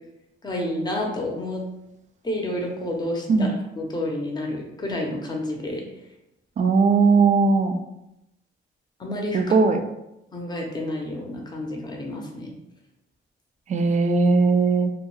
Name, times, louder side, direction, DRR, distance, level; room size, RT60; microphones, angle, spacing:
voice 1, 0.4-1.6 2.2-3.5 3.8-5.8 9.0-9.5 10.3-12.5, left 1 dB, 20° left, 0 dB, 0.7 m, -29 dB
voice 2, 6.6-7.8 9.3-9.8 13.7-14.9, right 4 dB, 40° right, 6 dB, 0.4 m, -19 dB
2.2 x 2.2 x 3.1 m, 0.87 s
cardioid pair, 90°, 20 cm